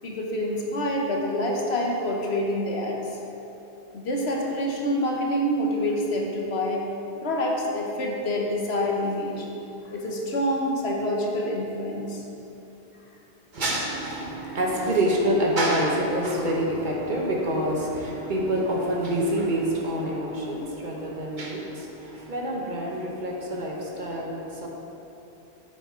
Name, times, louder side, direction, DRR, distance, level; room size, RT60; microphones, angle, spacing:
voice 1, 0.0-3.0 3.9-6.8 7.2-9.5 9.8-12.2 14.5-14.6, left 1 dB, 80° left, -1 dB, 1.3 m, -27 dB
voice 2, 13.5-24.7, right 1 dB, 50° right, -2 dB, 1.2 m, -27 dB
8.7 x 6.7 x 3.7 m, 3.0 s
omnidirectional pair, 1.1 m